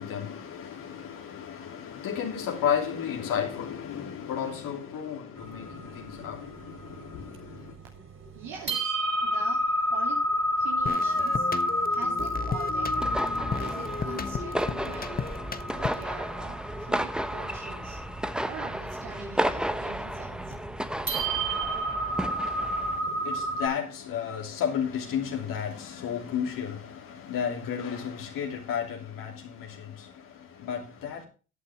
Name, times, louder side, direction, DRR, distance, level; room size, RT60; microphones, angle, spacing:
voice 1, 0.0-7.6 23.2-29.8 30.6-31.2, left 8 dB, 75° left, 3.0 m, -32 dB
sound 1, 5.4-7.7 8.2-8.3 8.7-23.7, equal, 40° right, 6.0 m, -30 dB
voice 2, 8.3-10.2 10.6-13.1 13.5-15.3 15.6-18.0 18.5-20.5, right 6 dB, 80° right, 3.1 m, -44 dB
sound 2, 10.9-16.2, left 5 dB, 25° left, 1.2 m, -35 dB
sound 3, 12.9-23.0, equal, ahead, 1.1 m, -33 dB
15.0 x 8.5 x 3.6 m
supercardioid pair, 70°, 34 cm